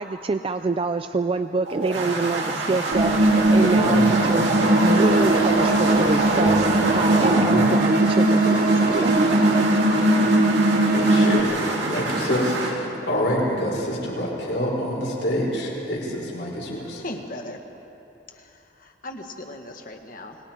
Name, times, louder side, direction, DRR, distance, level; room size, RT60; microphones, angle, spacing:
voice 1, 0.0-4.5 4.8-9.7, right 3 dB, 30° right, 9 dB, 0.4 m, -26 dB
sound 1, 1.6-12.7, right 2 dB, 85° right, 2.5 m, -25 dB
sound 2, 2.9-11.4, right 1 dB, 55° right, 1.0 m, -20 dB
voice 2, 3.7-4.1 7.2-7.7 10.9-11.5 11.9-17.0, equal, 85° left, -3 dB, 5.0 m, -27 dB
sound 3, 6.5-16.1, right 1 dB, 10° right, 0.7 m, -38 dB
voice 3, 17.0-17.6 18.3-20.4, left 1 dB, 50° left, 3 dB, 1.7 m, -38 dB
29.0 x 20.0 x 4.5 m, 2.9 s
head